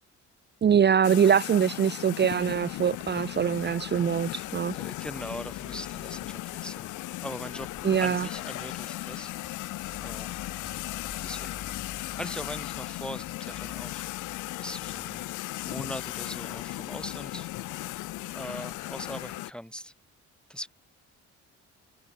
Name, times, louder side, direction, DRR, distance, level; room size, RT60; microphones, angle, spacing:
voice 1, 0.6-4.7 7.8-8.3, right 8 dB, 35° right, 0.7 m, -23 dB
sound 1, 1.0-19.5, left 18 dB, 85° left, 0.6 m, -37 dB
sound 2, 2.3-19.4, left 8 dB, 55° left, 7.5 m, -50 dB
Dog, 2.4-13.7, left 3 dB, 20° left, 6.3 m, -60 dB
voice 2, 4.7-6.9 7.2-7.7 8.0-9.3 10.0-10.4 11.2-11.6 12.0-15.3 15.6-17.5 18.3-19.9 20.5-20.7, equal, 5° left, 1.4 m, -40 dB
cardioid pair, 90°, 30 cm